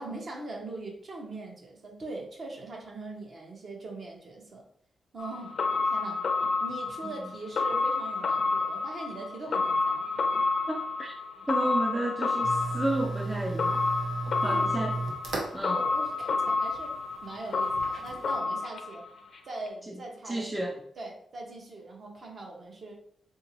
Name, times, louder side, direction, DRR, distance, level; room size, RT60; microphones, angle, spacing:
voice 1, 0.0-4.6 5.1-5.5 5.8-6.2 6.6-10.0 14.4-15.0 15.6-16.9 17.2-19.0 19.5-22.9, right 2 dB, 50° right, 0 dB, 0.9 m, -41 dB
sound 1, 5.2-19.4 19.7-19.8, left 3 dB, 60° left, 0.4 m, -30 dB
voice 2, 10.7-11.1 11.5-13.8 14.4-15.0 15.5-15.8 19.9-20.0 20.3-20.8, right 1 dB, 10° right, 1 dB, 0.4 m, -32 dB
sound 2, 12.4-18.4, right 3 dB, 80° right, 0.7 m, -36 dB
3.6 x 2.7 x 2.9 m, 0.63 s
wide cardioid pair, 120°, 0 cm